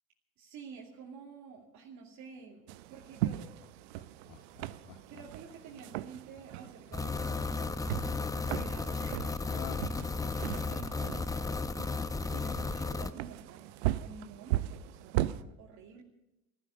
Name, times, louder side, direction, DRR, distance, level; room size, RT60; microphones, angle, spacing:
voice 1, 0.4-3.5 4.9-7.8 8.5-9.9 10.7-11.7 12.0-13.7 14.0-16.0, right 6 dB, 55° right, -3 dB, 2.7 m, -50 dB
sound 1, 2.7-15.4, right 15 dB, 75° right, 0.7 m, -38 dB
Laughter, 3.6-7.8 9.4-12.4 12.7-12.8, left 10 dB, 70° left, 1.4 m, -50 dB
sound 2, 6.9-13.1, left 4 dB, 10° left, 0.7 m, -34 dB
15.5 x 13.5 x 6.8 m, 0.92 s
hypercardioid pair, 85°, 33 cm